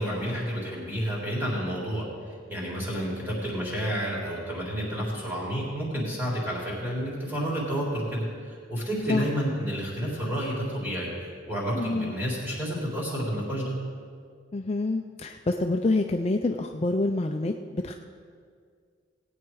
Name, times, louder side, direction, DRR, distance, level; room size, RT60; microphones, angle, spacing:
voice 1, 0.0-13.8, equal, 10° right, -6 dB, 3.6 m, -30 dB
voice 2, 11.7-12.1 14.5-18.0, left 2 dB, 30° left, 4 dB, 0.4 m, -27 dB
18.5 x 8.9 x 4.8 m, 2.1 s
head